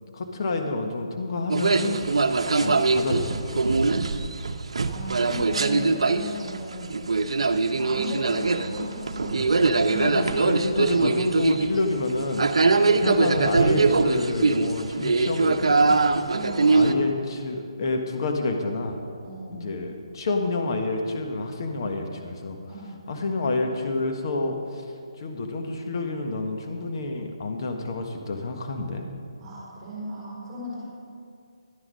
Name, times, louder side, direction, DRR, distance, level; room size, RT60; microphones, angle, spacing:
voice 1, 0.1-2.0 2.6-3.8 10.0-12.5 13.0-16.0 16.7-19.0 19.5-22.6 23.1-24.8 25.2-29.1, left 2 dB, 45° left, 4 dB, 1.3 m, -28 dB
sound 1, 1.5-16.9, right 3 dB, 75° right, 0.7 m, -22 dB
voice 2, 4.9-7.0 7.5-10.5 12.7-13.1 16.3-17.1 19.2-19.7 22.7-22.9 29.4-30.8, right 1 dB, 15° right, -6 dB, 3.8 m, -36 dB
12.0 x 9.9 x 5.5 m, 2.4 s
hypercardioid pair, 165°, 3 cm